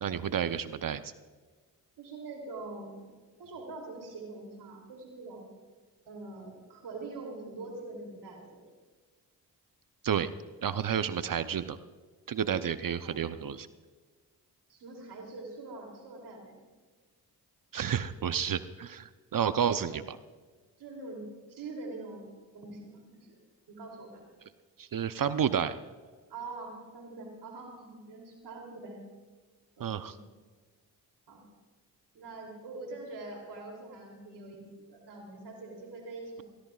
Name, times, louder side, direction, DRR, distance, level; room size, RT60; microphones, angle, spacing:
voice 1, 0.0-1.0 10.0-10.3 10.6-11.8 12.3-13.7 17.7-20.2 24.8-25.8 29.8-30.1, right 8 dB, 55° right, 12 dB, 0.8 m, -30 dB
voice 2, 2.0-3.0 3.4-5.5 6.1-8.7 12.4-12.6 13.0-13.4 14.7-16.6 19.5-20.0 20.8-23.4 23.7-24.2 26.3-29.0 29.8-30.2 31.3-31.4 32.1-36.4, right 3 dB, 75° right, 2 dB, 3.1 m, -44 dB
22.0 x 16.5 x 2.4 m, 1.4 s
supercardioid pair, 40°, 41 cm